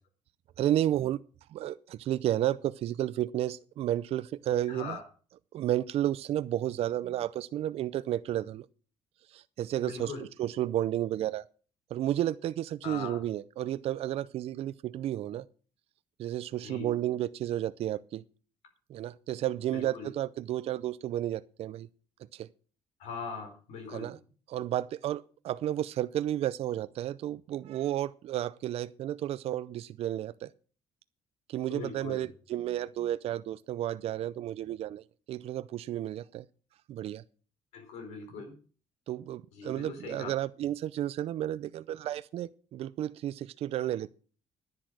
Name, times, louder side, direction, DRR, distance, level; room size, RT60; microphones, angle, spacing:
voice 1, 0.6-1.2 1.5-5.0 5.5-8.7 9.3-11.4 11.9-15.5 16.2-18.2 18.9-21.9 22.3-22.5 23.9-24.2 24.5-30.5 31.5-36.5 36.9-37.2 39.1-44.1, right 12 dB, 65° right, 0.5 m, -32 dB
voice 2, 4.7-5.0 9.8-10.2 12.8-13.2 16.6-16.9 19.7-20.1 23.0-24.1 31.7-32.3 37.7-38.6 39.5-40.3, left 5 dB, 85° left, 4.1 m, -40 dB
10.5 x 10.5 x 6.1 m
cardioid pair, 110°, 11 cm